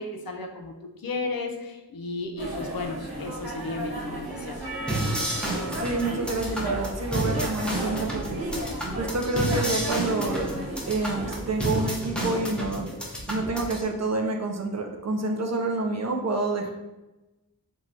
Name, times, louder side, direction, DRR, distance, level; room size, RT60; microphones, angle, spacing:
voice 1, 0.0-4.6, left 3 dB, 65° left, 3 dB, 0.5 m, -34 dB
sound 1, 2.4-11.9, right 1 dB, 60° right, 1.1 m, -35 dB
Percussion, 4.6-9.2, right 3 dB, 85° right, 0.7 m, -43 dB
sound 2, 4.9-13.8, right 1 dB, 5° left, 0.6 m, -31 dB
voice 2, 5.8-8.5 9.0-10.5 10.9-12.8 13.3-16.7, right 2 dB, 45° right, 2 dB, 0.4 m, -28 dB
3.1 x 2.3 x 2.5 m, 1.0 s
wide cardioid pair, 55°, 39 cm